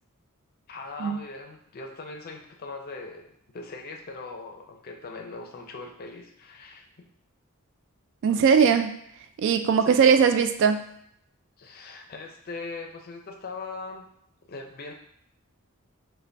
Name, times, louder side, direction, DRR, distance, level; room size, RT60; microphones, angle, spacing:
voice 1, 0.7-6.8 9.8-10.1 11.6-14.1 14.5-14.9, left 3 dB, 45° left, 3 dB, 0.5 m, -40 dB
voice 2, 8.2-9.0 9.4-10.9, right 6 dB, 60° right, 8 dB, 0.3 m, -20 dB
3.9 x 2.2 x 3.3 m, 0.74 s
head